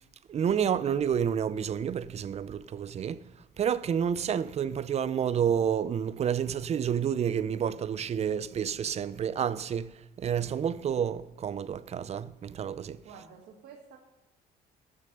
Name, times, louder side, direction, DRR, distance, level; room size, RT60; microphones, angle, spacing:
voice 1, 0.3-3.3 3.6-13.0, right 8 dB, 40° right, 0.5 m, -29 dB
voice 2, 13.0-14.0, right 6 dB, 75° right, 1.4 m, -50 dB
12.5 x 6.2 x 6.7 m
cardioid pair, 110°, 17 cm